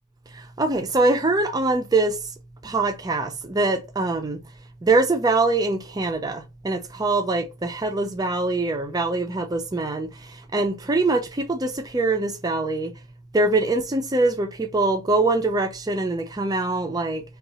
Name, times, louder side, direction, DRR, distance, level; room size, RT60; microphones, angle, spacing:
voice 1, 0.6-2.2 2.6-4.4 4.8-10.1 10.5-12.9 13.3-17.2, right 2 dB, 15° right, 0.4 m, -23 dB
2.8 x 2.3 x 4.0 m
head